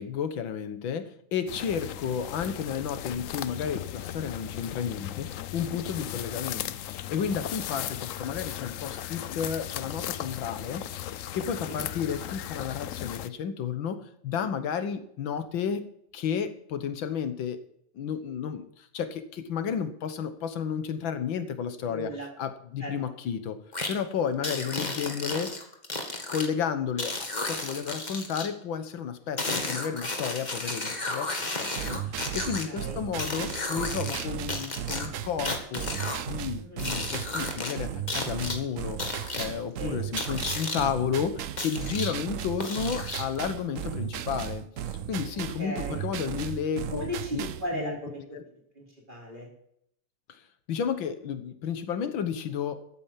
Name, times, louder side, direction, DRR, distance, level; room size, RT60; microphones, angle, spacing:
voice 1, 0.0-14.0 14.2-15.8 16.1-17.6 18.0-22.1 22.4-23.6 23.9-25.7 26.3-27.2 27.4-35.9 36.3-47.1 47.3-47.4 47.7-48.0 48.3-48.4 50.3-50.4 50.7-52.8, left 7 dB, 90° left, 10 dB, 2.0 m, -32 dB
sound 1, 1.5-13.3, left 12 dB, 70° left, 0.7 m, -37 dB
voice 2, 21.8-22.3 22.8-22.9 24.4-24.6 32.6-33.0 36.6-36.9 39.8-40.0 45.6-46.0 46.9-48.2 48.5-49.5, equal, 25° right, -2 dB, 4.6 m, -37 dB
sound 2, 23.7-23.9 24.4-26.5 27.0-28.5 29.4-32.6 33.2-34.2 34.5-36.2 36.8-37.7 38.1-38.6 39.0-39.5 40.2-40.8 41.6-42.1 42.6-43.4, left 2 dB, 25° left, 1.9 m, -33 dB
sound 3, 31.8-47.7, right 10 dB, 60° right, 0.8 m, -36 dB
14.0 x 8.8 x 7.5 m, 0.70 s
omnidirectional pair, 2.0 m